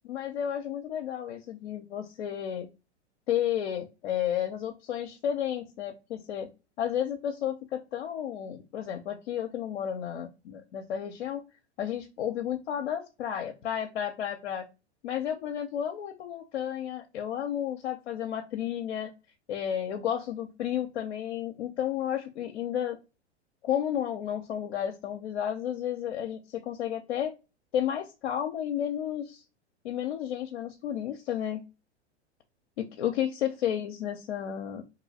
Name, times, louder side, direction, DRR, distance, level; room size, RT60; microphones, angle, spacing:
voice 1, 0.0-2.7 3.3-6.5 6.8-11.4 11.8-14.7 15.0-19.1 19.5-23.0 23.6-27.3 27.7-29.4 29.8-31.6 32.8-34.8, left 10 dB, 65° left, 4 dB, 0.6 m, -32 dB
3.0 x 2.7 x 2.7 m, 0.28 s
figure-of-eight pair, 100°, 34 cm